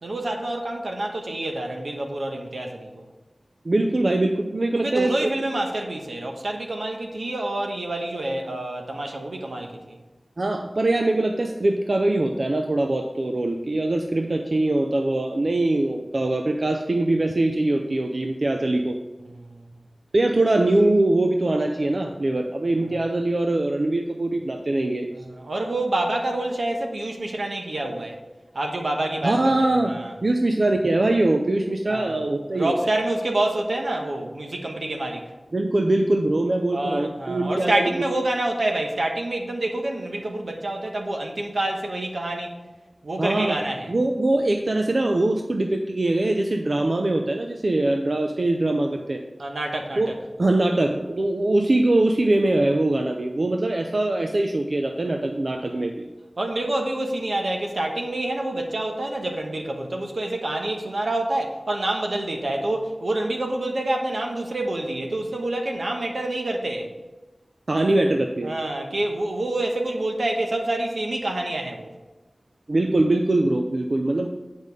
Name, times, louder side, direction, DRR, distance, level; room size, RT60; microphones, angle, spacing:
voice 1, 0.0-3.1 4.8-10.0 19.3-19.7 22.9-23.0 25.1-28.2 28.5-30.1 31.9-32.1 32.5-35.3 36.7-42.6 43.0-43.9 49.4-50.2 55.8-55.9 56.4-66.9 68.4-71.9, right 1 dB, 85° right, 2 dB, 1.2 m, -27 dB
voice 2, 3.6-5.1 10.4-19.0 20.1-25.1 29.2-29.9 30.2-32.7 35.5-37.9 43.2-43.6 43.9-49.2 50.0-50.1 50.4-56.1 67.7-68.5 72.7-74.3, right 2 dB, 60° right, 4 dB, 0.5 m, -22 dB
8.3 x 5.2 x 5.2 m, 1.1 s
wide cardioid pair, 70°, 0 cm